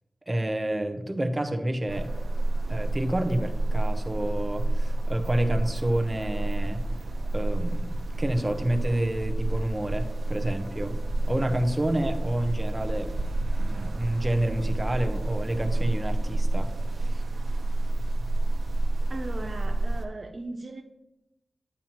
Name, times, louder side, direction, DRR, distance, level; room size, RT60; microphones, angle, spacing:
voice 1, 0.3-2.1 2.7-6.9 7.3-11.0 11.3-13.1 13.6-16.7 17.0-17.2, right 1 dB, 15° right, 5 dB, 0.8 m, -29 dB
sound 1, 1.9-20.1, right 2 dB, 65° right, 0.9 m, -29 dB
voice 2, 19.1-20.8, right 2 dB, 45° right, 4 dB, 0.5 m, -37 dB
8.8 x 8.8 x 3.0 m, 0.93 s
wide cardioid pair, 110°, 0 cm